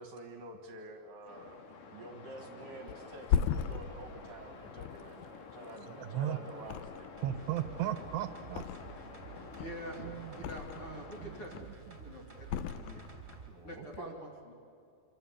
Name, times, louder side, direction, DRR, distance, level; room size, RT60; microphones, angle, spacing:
voice 1, 0.0-1.5 1.9-7.3 12.8-12.9 13.5-14.2, right 2 dB, 60° right, 5 dB, 2.7 m, -49 dB
sound 1, 1.3-11.4, left 5 dB, 55° left, 3.2 m, -50 dB
Thump thud, 2.9-6.2 6.6-7.4 7.7-9.1 9.5-11.0 11.4-11.9 12.4-13.4 13.8-14.0, left 8 dB, 85° left, 2.0 m, -37 dB
voice 2, 6.0-6.4 7.2-8.6 10.0-10.5 10.9-12.0, right 12 dB, 80° right, 10 dB, 2.8 m, -37 dB
sound 2, 7.2-13.5 13.9-14.0, right 5 dB, 15° right, 2.6 m, -51 dB
voice 3, 9.6-11.7 12.0-13.0 13.6-14.5, equal, 35° left, 0 dB, 3.0 m, -46 dB
26.5 x 25.0 x 8.6 m, 2.4 s
omnidirectional pair, 5.2 m